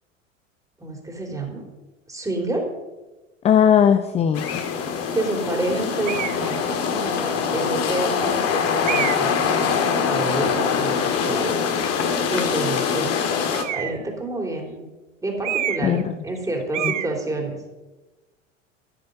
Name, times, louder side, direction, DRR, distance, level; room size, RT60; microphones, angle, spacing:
voice 1, 0.8-1.6 2.1-2.7 5.1-11.6 12.3-13.3 13.7-14.8 15.2-17.6, right 2 dB, 10° right, 1 dB, 3.4 m, -29 dB
voice 2, 3.4-4.7 15.8-16.0 16.8-16.9, left 8 dB, 15° left, 11 dB, 0.4 m, -18 dB
sound 1, 4.3-13.6, left 6 dB, 40° left, 2.0 m, -23 dB
sound 2, 6.1-6.5 7.3-7.4 8.8-9.4 13.5-14.1 15.4-16.0 16.3-16.5 16.7-17.1, right 12 dB, 70° right, 0.8 m, -27 dB
14.0 x 9.5 x 5.3 m, 1.1 s
figure-of-eight pair, 85°, 38 cm